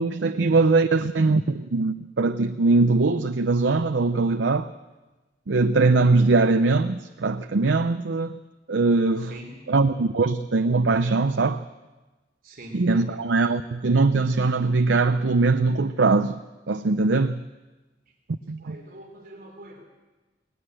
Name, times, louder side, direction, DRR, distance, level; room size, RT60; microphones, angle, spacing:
voice 1, 0.0-4.7 5.5-8.4 8.7-9.3 9.7-11.6 12.7-16.4 16.7-17.4 18.5-18.8, right 3 dB, 90° right, 0.6 m, -21 dB
voice 2, 12.4-13.2 18.6-19.8, right 1 dB, 55° right, 3.3 m, -43 dB
19.5 x 18.5 x 7.8 m
head